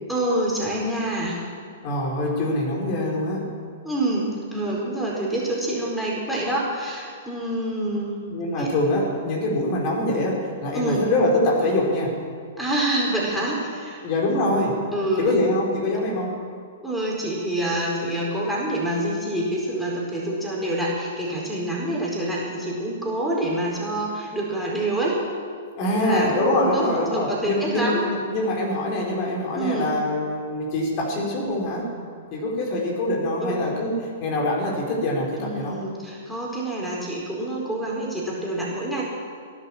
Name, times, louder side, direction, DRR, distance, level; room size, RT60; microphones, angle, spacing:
voice 1, 0.1-1.4 3.8-8.2 8.6-8.7 10.7-11.0 12.6-14.0 14.9-15.5 16.8-25.2 25.9-28.0 29.5-29.9 33.4-33.5 35.4-39.0, right 1 dB, ahead, -5 dB, 4.5 m, -26 dB
voice 2, 1.8-3.5 8.3-12.2 14.0-14.8 15.2-16.4 25.8-31.9 32.3-33.9 34.2-35.8, left 1 dB, 45° left, -2 dB, 4.8 m, -24 dB
17.5 x 11.0 x 7.3 m, 2.2 s
hypercardioid pair, 115°, 0 cm